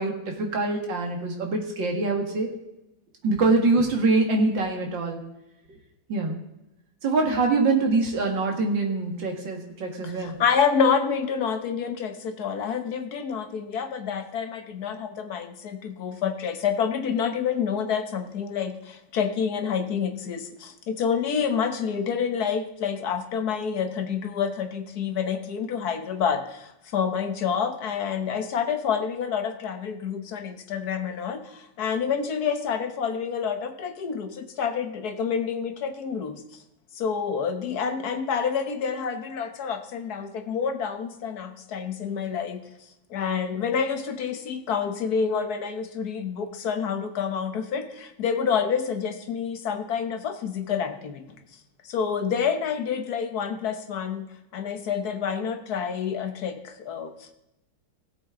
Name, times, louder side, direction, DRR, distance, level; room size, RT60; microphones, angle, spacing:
voice 1, 0.0-2.5 3.2-5.2 6.1-6.4 7.0-10.4, right 3 dB, 80° right, 2 dB, 2.6 m, -24 dB
voice 2, 10.0-36.4 36.9-42.7 43.1-51.2 51.8-54.2 54.5-57.3, left 6 dB, 60° left, 7 dB, 1.5 m, -28 dB
17.0 x 7.7 x 3.8 m, 0.92 s
omnidirectional pair, 2.0 m